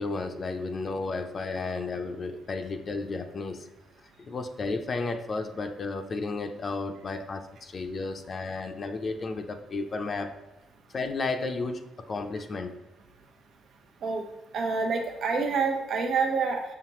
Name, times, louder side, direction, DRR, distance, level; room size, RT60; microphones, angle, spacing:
voice 1, 0.0-3.7 4.2-10.4 10.9-12.8, left 3 dB, 45° left, 5 dB, 0.6 m, -33 dB
voice 2, 14.5-16.7, right 4 dB, 65° right, 3 dB, 0.9 m, -27 dB
6.7 x 5.8 x 3.0 m, 1.1 s
cardioid pair, 90°, 0 cm